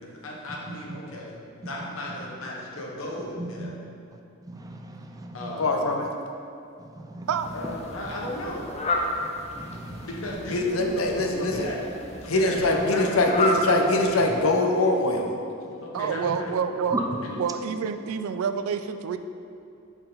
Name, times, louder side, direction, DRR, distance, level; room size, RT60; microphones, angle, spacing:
voice 1, 0.0-3.7 5.3-5.8 7.5-8.8 10.0-11.1 11.4-11.8 12.2-13.9 15.8-16.6 17.0-17.3, left 1 dB, 70° left, -2 dB, 1.0 m, -35 dB
voice 2, 3.4-3.7 4.5-5.5 7.0-7.3 9.6-10.1 16.2-16.4 16.9-17.0, right 2 dB, 15° right, 3 dB, 0.4 m, -35 dB
voice 3, 5.6-6.1 10.5-11.7 12.3-15.3, left 2 dB, 90° left, 2 dB, 0.7 m, -23 dB
Fowl, 7.3-14.7, left 1 dB, 30° left, 0.5 m, -32 dB
voice 4, 15.9-17.0 17.4-19.2, right 7 dB, 90° right, 9 dB, 0.3 m, -28 dB
5.7 x 4.5 x 3.8 m, 2.5 s
head